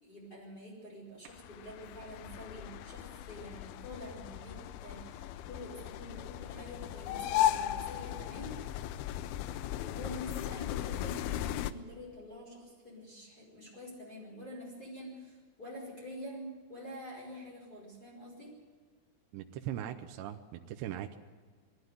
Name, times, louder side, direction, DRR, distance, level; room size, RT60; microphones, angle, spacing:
voice 1, 0.0-8.6 9.8-18.6, left 1 dB, 20° left, -4 dB, 5.3 m, -47 dB
sound 1, 1.3-11.7, left 12 dB, 90° left, 2.2 m, -36 dB
voice 2, 19.3-21.2, right 11 dB, 75° right, 5 dB, 3.0 m, -40 dB
21.5 x 13.5 x 9.5 m, 1.5 s
omnidirectional pair, 5.4 m